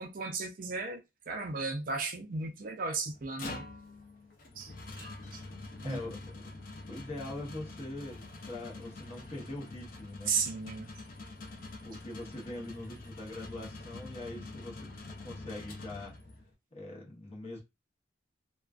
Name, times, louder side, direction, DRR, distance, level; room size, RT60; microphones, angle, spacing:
voice 1, 0.0-3.6 4.6-5.4 5.8-6.0 10.3-10.9, right 4 dB, 50° right, 0.4 m, -35 dB
sound 1, 3.1-16.5, left 2 dB, 50° left, 0.5 m, -45 dB
voice 2, 5.8-10.3 11.8-14.9 15.2-16.2 16.7-17.6, left 1 dB, 35° left, 0.9 m, -43 dB
2.3 x 2.2 x 2.3 m
head